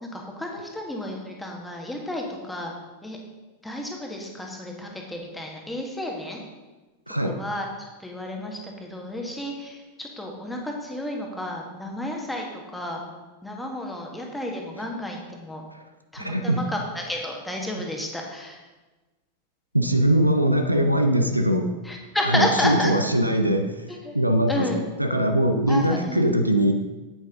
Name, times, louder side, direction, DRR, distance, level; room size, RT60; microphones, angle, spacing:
voice 1, 0.0-2.7 3.0-3.2 3.6-6.4 7.2-13.0 13.4-15.6 16.1-18.6 21.8-22.9 23.9-24.2 24.5-24.8 25.7-26.3, left 1 dB, 5° left, 0 dB, 1.6 m, -31 dB
voice 2, 7.1-7.4 15.7-15.8 16.2-16.7 19.7-21.8 22.2-23.8 24.1-26.7, right 1 dB, 90° right, 6 dB, 0.6 m, -21 dB
8.8 x 8.4 x 3.7 m, 1.2 s
figure-of-eight pair, 90°, 0 cm